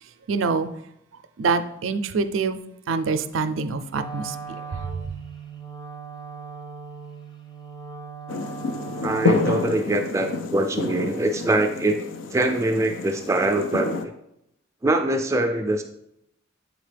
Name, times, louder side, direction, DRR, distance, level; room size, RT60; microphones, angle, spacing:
voice 1, 0.3-0.7 1.4-2.6 2.9-4.3, right 4 dB, 85° right, 10 dB, 0.4 m, -25 dB
Wind instrument woodwind instrument, 3.9-9.9, right 5 dB, 25° left, 0.8 m, -39 dB
sound 1, 8.3-14.1, left 4 dB, 80° left, 0.5 m, -28 dB
voice 2, 9.0-12.0 12.3-14.1 14.8-15.8, right 2 dB, 15° right, 4 dB, 0.3 m, -23 dB
8.0 x 3.9 x 3.3 m, 0.79 s
head